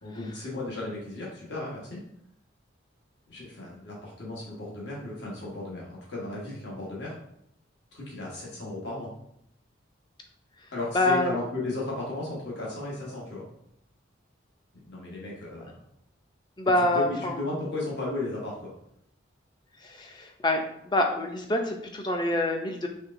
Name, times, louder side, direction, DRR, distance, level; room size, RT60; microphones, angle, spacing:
voice 1, 0.0-2.0 3.3-7.2 7.9-9.1 10.7-13.5 14.9-15.8 16.8-18.7, left 2 dB, 60° left, -5 dB, 1.2 m, -35 dB
voice 2, 10.9-11.4 16.6-17.4 19.8-22.9, left 1 dB, 20° left, 4 dB, 0.4 m, -26 dB
4.3 x 3.2 x 2.5 m, 0.74 s
head